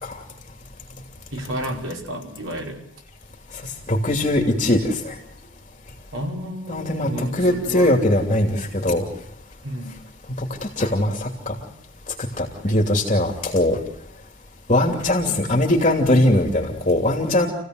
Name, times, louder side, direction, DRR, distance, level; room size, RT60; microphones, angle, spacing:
voice 1, 1.3-2.8 6.1-8.0 9.6-9.9 12.7-12.8, right 1 dB, 85° right, 1 dB, 5.4 m, -31 dB
voice 2, 3.6-5.1 6.7-9.0 10.4-11.6 12.4-13.8 14.7-17.5, left 1 dB, 35° left, 2 dB, 2.9 m, -21 dB
29.0 x 16.0 x 8.0 m, 0.79 s
head